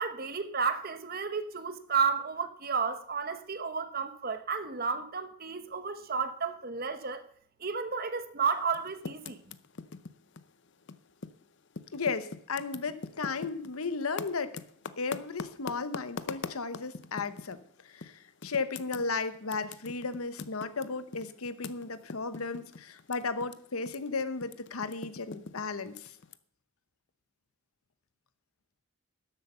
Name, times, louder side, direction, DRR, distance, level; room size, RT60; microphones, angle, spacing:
voice 1, 0.0-7.2 7.6-9.4, right 5 dB, 45° right, 1.0 m, -32 dB
Typing, 8.6-11.4 11.7-17.6 18.0-18.1 18.4-23.5 23.8-26.3, left 4 dB, 55° left, 0.6 m, -42 dB
voice 2, 11.9-14.6 15.0-26.1, left 4 dB, 90° left, 1.0 m, -35 dB
12.5 x 8.2 x 6.8 m
head